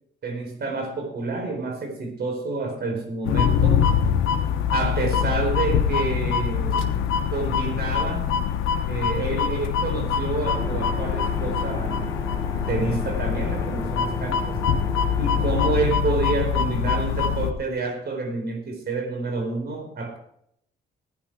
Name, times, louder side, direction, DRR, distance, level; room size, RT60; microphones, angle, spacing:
voice 1, 0.2-3.9 4.7-6.9 7.3-8.3 8.9-12.1 12.7-14.6 15.2-20.2, right 3 dB, 55° right, 4 dB, 4.5 m, -28 dB
sound 1, 3.2-17.5, left 7 dB, 90° left, 1.2 m, -24 dB
sound 2, 10.5-15.9, left 2 dB, 15° left, 1.5 m, -33 dB
15.5 x 10.0 x 4.8 m, 0.70 s
cardioid pair, 90°, 20 cm